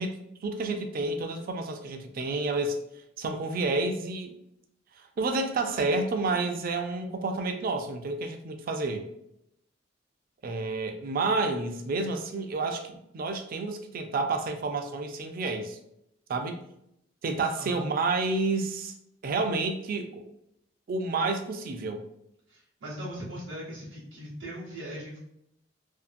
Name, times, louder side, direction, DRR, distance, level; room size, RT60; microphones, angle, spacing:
voice 1, 0.0-2.8 3.2-4.3 5.2-9.1 10.4-15.8 16.3-16.6 17.2-18.9 19.2-20.3 20.9-22.0, right 3 dB, 50° right, 6 dB, 0.4 m, -30 dB
voice 2, 22.5-25.2, equal, 70° right, -9 dB, 0.8 m, -39 dB
2.6 x 2.4 x 2.5 m, 0.78 s
head